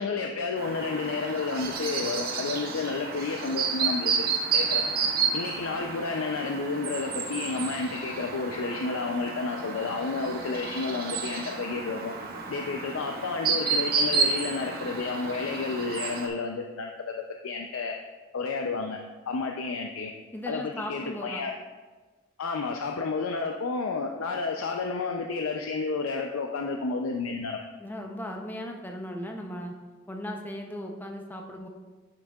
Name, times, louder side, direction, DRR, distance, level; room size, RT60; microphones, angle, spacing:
voice 1, 0.0-4.8 5.3-12.1 12.5-17.1 17.4-17.9 18.3-19.0 19.3-20.1 20.5-21.5 22.4-27.6, left 4 dB, 90° left, 2 dB, 0.5 m, -31 dB
Chirp tweet, 0.6-16.3, right 5 dB, 45° right, 0.8 m, -31 dB
voice 2, 20.3-21.4 27.8-29.7 30.1-31.7, equal, 10° left, 2 dB, 0.6 m, -37 dB
10.0 x 6.2 x 2.4 m, 1.3 s
head